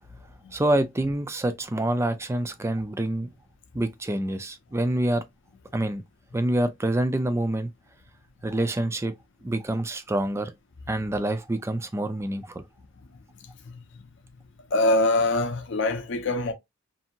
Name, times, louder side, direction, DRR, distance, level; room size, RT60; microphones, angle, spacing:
voice 1, 0.5-3.3 3.7-5.2 5.7-6.0 6.3-7.7 8.4-9.1 9.4-10.5 10.9-12.6, right 1 dB, 15° right, 0.3 m, -26 dB
voice 2, 14.7-16.5, left 2 dB, 60° left, 0.5 m, -23 dB
2.7 x 2.7 x 2.5 m
head